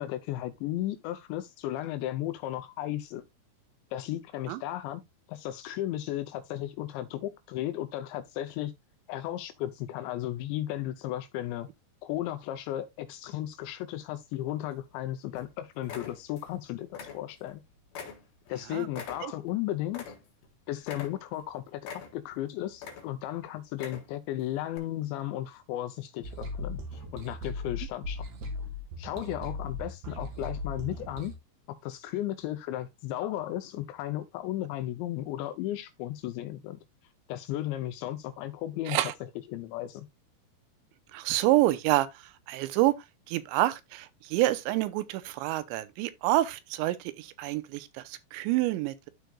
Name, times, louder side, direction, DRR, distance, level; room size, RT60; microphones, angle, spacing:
voice 1, 0.0-3.2 3.9-5.0 5.3-8.7 9.1-11.7 12.0-17.6 18.5-20.0 20.7-21.8 22.1-28.2 29.0-31.3 31.7-36.8 37.3-39.0 39.5-40.1, left 13 dB, 85° left, 2.9 m, -35 dB
sound 1, 14.3-15.0 15.4-15.5 15.8-16.6 16.9-17.6 17.9-20.5 20.8-21.5 21.8-22.4 22.7-23.3 23.7-24.3 24.7-24.8, left 6 dB, 60° left, 3.1 m, -44 dB
sound 2, 26.2-31.3, left 2 dB, 55° right, 2.2 m, -37 dB
voice 2, 41.1-43.0 43.3-49.1, right 16 dB, 90° right, 3.0 m, -28 dB
12.5 x 4.7 x 2.3 m
omnidirectional pair, 5.2 m